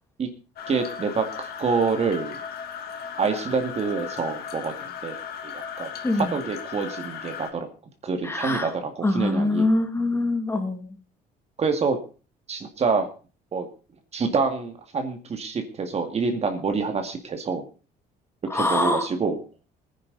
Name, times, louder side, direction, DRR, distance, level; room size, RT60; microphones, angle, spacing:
sound 1, 0.6-7.5, left 7 dB, 70° left, 2.5 m, -36 dB
voice 1, 0.7-2.4 3.2-4.7 5.0-5.2 5.4-5.9 6.2-7.7 8.0-9.7 11.6-12.0 12.5-13.1 13.5-13.7 14.1-17.6 18.5-19.4, right 5 dB, 40° right, 6 dB, 2.2 m, -26 dB
voice 2, 8.2-8.7 9.0-10.9 18.5-19.1, left 2 dB, 15° left, 5 dB, 2.5 m, -24 dB
19.5 x 10.0 x 4.1 m, 0.36 s
cardioid pair, 110°, 17 cm